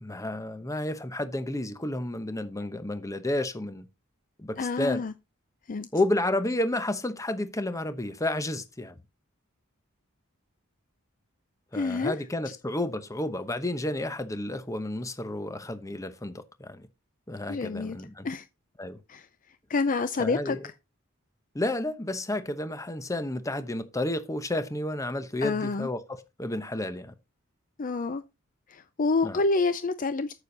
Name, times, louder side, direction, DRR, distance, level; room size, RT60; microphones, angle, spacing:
voice 1, 0.0-3.9 4.4-5.0 5.9-9.0 11.7-16.9 17.3-18.3 18.8-19.0 20.2-20.6 21.5-27.1 29.2-29.4, left 1 dB, 15° left, 0.9 m, -31 dB
voice 2, 4.6-5.1 5.7-5.9 11.7-12.2 12.5-12.6 17.5-18.0 18.2-18.5 19.1-19.3 19.7-20.7 25.4-25.9 27.8-28.2 28.7-30.3, left 3 dB, 40° left, 0.5 m, -28 dB
9.1 x 7.0 x 3.9 m
head